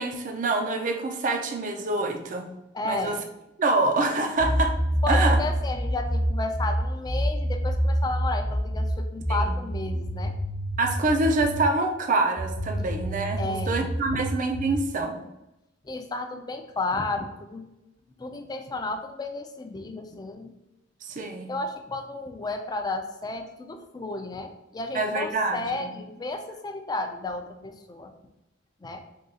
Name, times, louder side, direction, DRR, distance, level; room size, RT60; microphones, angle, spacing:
voice 1, 0.0-2.5 2.8-3.2 3.6-4.7 5.1-5.4 9.3-9.5 10.8-15.2 21.1-21.5 24.9-25.9, right 2 dB, 45° right, 4 dB, 0.4 m, -26 dB
voice 2, 2.7-3.2 5.0-10.3 13.4-13.9 14.1-14.2 15.8-17.7 18.2-20.5 21.5-28.1 28.8-29.0, left 2 dB, 20° left, 5 dB, 0.4 m, -33 dB
sound 1, 4.4-11.7 12.4-14.8, equal, 50° left, 1.0 m, -27 dB
3.7 x 2.3 x 4.0 m, 0.91 s
head